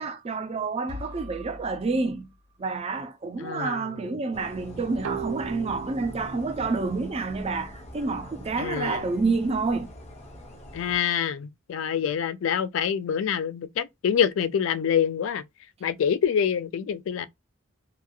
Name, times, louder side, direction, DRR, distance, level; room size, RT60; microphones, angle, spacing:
voice 1, 0.0-2.3 2.6-9.9, right 3 dB, 30° right, 0.4 m, -28 dB
sound 1, 0.9-2.9, left 2 dB, 60° right, 0.9 m, -43 dB
voice 2, 3.4-3.9 8.6-9.0 10.7-15.4 15.8-17.3, left 8 dB, 70° left, 0.3 m, -26 dB
sound 2, 4.3-11.0, equal, 35° left, 0.7 m, -44 dB
sound 3, 5.0-8.5, right 6 dB, 85° right, 0.5 m, -39 dB
2.9 x 2.3 x 2.3 m
head